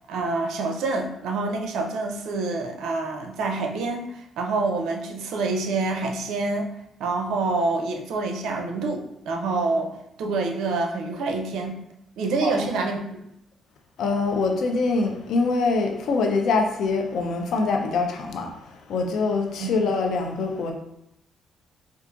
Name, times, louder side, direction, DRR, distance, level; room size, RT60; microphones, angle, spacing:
voice 1, 0.1-6.7 7.0-11.8 12.2-13.0 19.6-19.7, right 3 dB, 85° right, 3 dB, 0.5 m, -27 dB
voice 2, 14.0-20.7, left 3 dB, 75° left, 3 dB, 0.6 m, -24 dB
4.5 x 2.4 x 2.5 m, 0.79 s
cardioid pair, 90°, 0 cm